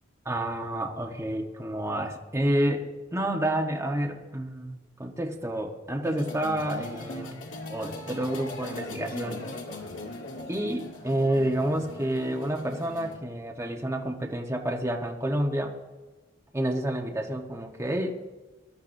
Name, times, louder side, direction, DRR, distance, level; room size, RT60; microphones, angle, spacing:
voice 1, 0.2-7.3 7.7-9.4 10.5-15.7 16.5-18.1, right 1 dB, 15° right, 1 dB, 1.1 m, -29 dB
sound 1, 6.0-13.1, left 2 dB, 80° left, 2.2 m, -40 dB
22.5 x 11.5 x 2.7 m, 1.2 s
head